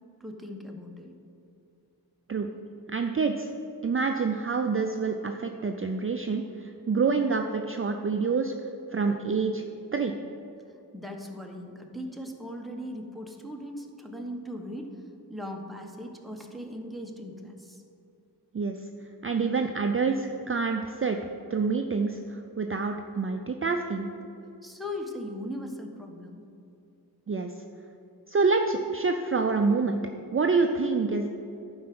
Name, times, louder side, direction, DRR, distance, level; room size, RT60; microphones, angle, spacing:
voice 1, 0.2-1.1 10.9-15.0 15.3-17.8 24.6-26.4, left 1 dB, ahead, 1 dB, 1.1 m, -39 dB
voice 2, 2.9-3.5 3.8-8.5 8.9-9.6 9.9-10.1 18.5-18.8 19.2-21.2 21.5-24.1 27.3-27.5 28.3-30.0 30.3-31.3, right 4 dB, 35° right, 4 dB, 0.5 m, -27 dB
11.0 x 4.8 x 6.0 m, 2.7 s
wide cardioid pair, 75°, 40 cm